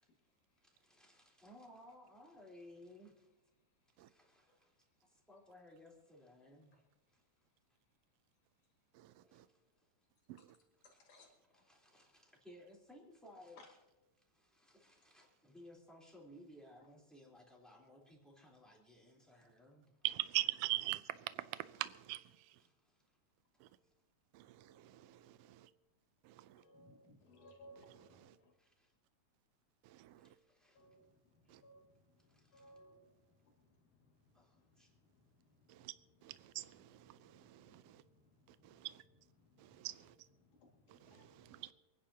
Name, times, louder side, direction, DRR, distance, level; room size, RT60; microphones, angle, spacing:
voice 1, 0.0-1.0 3.6-5.3 7.1-7.6 8.6-9.1 9.4-9.6 10.8-12.4 13.5-13.7 25.0-25.6 26.5-28.5 30.7-35.9 37.1-38.9 39.4-39.9 40.4-41.6, equal, 85° left, 3.7 m, -66 dB
voice 2, 0.6-3.3 3.9-7.2 9.2-9.9 10.9-11.3 11.7-13.6 14.3-20.0 22.6-23.0 23.8-23.9 28.6-28.9 30.2-30.9 31.4-31.6 32.3-32.6 34.3-34.9, left 1 dB, ahead, 3.5 m, -60 dB
voice 3, 8.9-9.5 10.3-10.5 20.0-22.7 23.6-23.7 24.3-25.7 26.2-26.6 27.9-28.4 29.8-30.4 31.5-31.6 35.7-35.9 36.2-38.0 38.5-39.0 39.6-40.3 40.9-41.7, right 18 dB, 85° right, 1.4 m, -43 dB
28.0 x 10.5 x 2.9 m
omnidirectional pair, 3.4 m